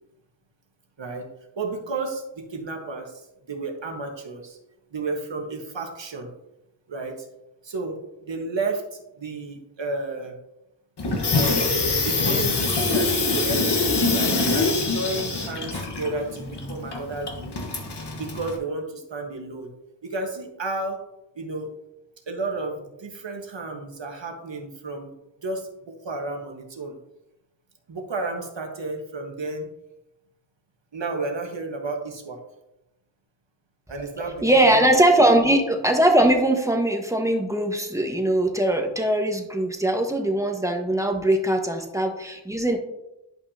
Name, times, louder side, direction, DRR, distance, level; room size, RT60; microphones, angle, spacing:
voice 1, 1.0-1.3 1.6-4.6 4.9-6.3 6.9-7.3 7.6-10.4 11.3-13.6 14.1-17.6 18.2-19.7 20.0-21.0 21.3-21.7 22.3-25.1 25.4-27.0 27.9-29.7 30.9-32.4 33.9-34.9, right 3 dB, 75° right, 2 dB, 1.5 m, -32 dB
Water tap faucet / Sink (filling or washing), 11.0-18.6, left 3 dB, 65° left, 1.4 m, -24 dB
voice 2, 34.4-42.8, right 1 dB, 5° right, 3 dB, 1.3 m, -21 dB
11.0 x 5.4 x 2.8 m, 0.90 s
wide cardioid pair, 50°, 44 cm